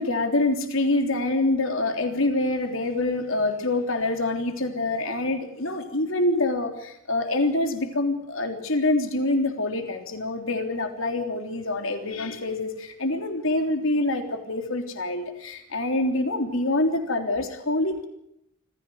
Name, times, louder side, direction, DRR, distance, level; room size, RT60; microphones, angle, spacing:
voice 1, 0.0-18.1, left 2 dB, 70° left, 6 dB, 3.4 m, -26 dB
26.0 x 15.5 x 9.4 m, 0.78 s
head